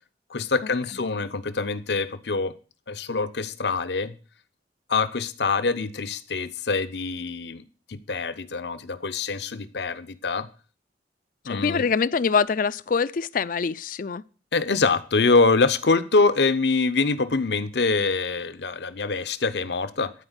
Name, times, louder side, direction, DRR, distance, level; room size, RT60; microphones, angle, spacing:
voice 1, 0.3-2.5 2.9-4.1 4.9-10.5 11.5-11.8 14.5-20.1, left 3 dB, 70° left, 0.8 m, -24 dB
voice 2, 11.5-14.2, left 5 dB, 50° left, 0.4 m, -24 dB
13.0 x 4.4 x 8.0 m
head